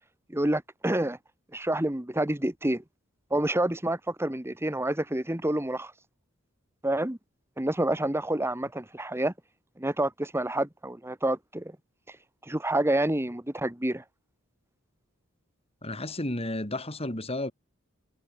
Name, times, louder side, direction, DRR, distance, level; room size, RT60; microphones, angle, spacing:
voice 1, 0.3-1.2 1.5-2.8 3.3-5.9 6.8-7.2 7.6-9.3 9.8-11.8 12.5-14.0, right 1 dB, 15° right, 1.5 m, -28 dB
voice 2, 15.8-17.5, left 1 dB, 30° left, 3.7 m, -32 dB
head